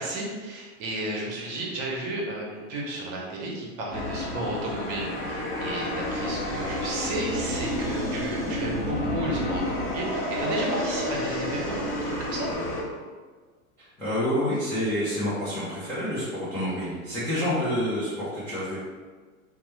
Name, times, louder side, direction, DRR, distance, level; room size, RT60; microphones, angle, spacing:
voice 1, 0.0-12.5, right 1 dB, 40° right, -2 dB, 0.8 m, -33 dB
sound 1, 3.9-12.8, left 1 dB, 30° left, 0.8 m, -30 dB
voice 2, 13.8-18.8, equal, 5° left, -13 dB, 0.3 m, -28 dB
3.1 x 2.1 x 3.1 m, 1.5 s
hypercardioid pair, 130°, 43 cm